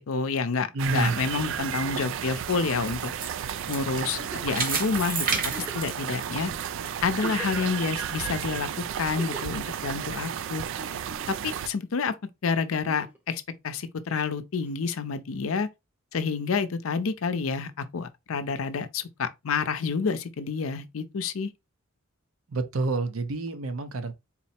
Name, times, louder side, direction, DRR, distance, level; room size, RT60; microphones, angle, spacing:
voice 1, 0.0-3.1 3.7-6.5 7.0-10.6 11.4-12.1 12.4-15.7 16.1-21.5, left 5 dB, 75° left, 0.5 m, -29 dB
voice 2, 0.7-1.2 22.5-24.1, right 2 dB, 75° right, 0.7 m, -28 dB
sound 1, 0.8-11.7, right 9 dB, 60° right, 0.3 m, -33 dB
sound 2, 2.1-6.9 7.3-7.4 8.0-8.1, right 5 dB, 40° right, 1.0 m, -32 dB
Giggle, 4.0-4.6 5.4-5.9 6.6-6.7 7.0-7.8 9.0-9.6 10.8-11.4 12.7-13.2 14.7-14.8, right 1 dB, 10° right, 0.7 m, -42 dB
4.1 x 2.0 x 4.2 m
head